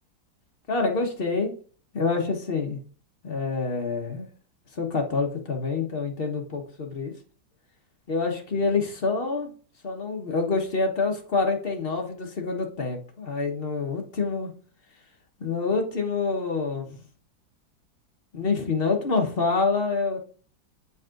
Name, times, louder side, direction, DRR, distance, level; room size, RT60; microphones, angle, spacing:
voice 1, 0.7-1.5 1.9-2.8 3.2-4.3 4.7-7.1 8.1-9.5 9.8-14.5 15.4-16.9 18.3-20.2, left 4 dB, 35° left, 2 dB, 1.2 m, -26 dB
9.2 x 4.2 x 2.5 m, 0.41 s
omnidirectional pair, 2.1 m